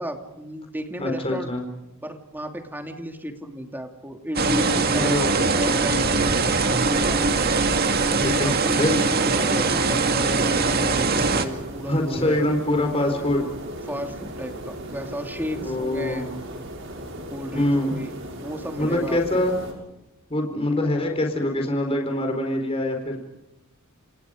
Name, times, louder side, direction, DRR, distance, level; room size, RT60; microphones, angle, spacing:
voice 1, 0.0-1.5 2.0-7.2 8.2-12.4 13.9-16.3 17.3-18.1 18.4-19.4, right 1 dB, 10° right, 4 dB, 2.8 m, -34 dB
voice 2, 1.0-1.6 4.9-5.4 8.2-8.5 8.8-9.0 11.9-13.4 15.5-16.3 17.5-17.9 18.8-19.6 20.3-23.2, left 1 dB, 25° left, 2 dB, 4.4 m, -24 dB
sound 1, 4.4-11.5, right 3 dB, 45° right, 2.1 m, -21 dB
sound 2, 6.9-19.7, right 1 dB, 60° right, 6.5 m, -37 dB
30.0 x 28.5 x 5.2 m, 0.88 s
head